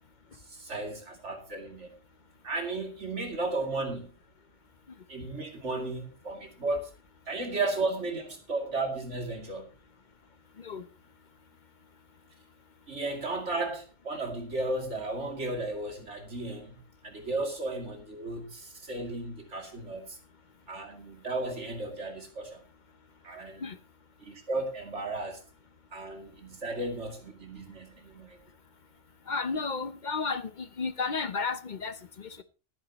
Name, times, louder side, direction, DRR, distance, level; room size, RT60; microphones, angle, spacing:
voice 1, 0.4-2.0 2.4-4.1 5.1-6.9 7.3-9.7 12.9-20.2 20.7-22.6 23.2-23.7 24.2-25.4 25.9-28.4, right 2 dB, 65° right, 2.9 m, -34 dB
voice 2, 29.3-32.4, left 4 dB, 45° left, 0.8 m, -33 dB
21.5 x 9.2 x 2.9 m
omnidirectional pair, 1.3 m